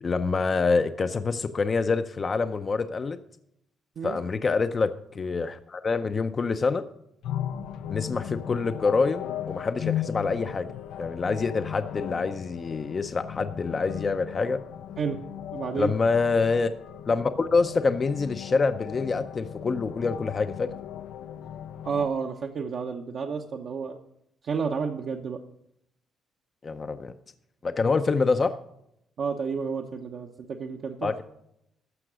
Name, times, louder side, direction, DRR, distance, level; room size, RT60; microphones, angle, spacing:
voice 1, 0.0-3.2 4.0-6.8 7.9-10.7 11.0-14.6 15.8-16.7 17.1-20.7 26.6-27.1 27.6-28.5 31.0-31.2, left 4 dB, 35° left, 10 dB, 0.6 m, -26 dB
sound 1, 7.2-22.1, left 10 dB, 85° left, 0.5 m, -37 dB
voice 2, 15.5-15.9 21.8-24.0 24.4-25.4 29.2-31.1, right 5 dB, 60° right, 1 dB, 0.9 m, -30 dB
14.0 x 5.9 x 6.2 m, 0.78 s
cardioid pair, 90°, 0 cm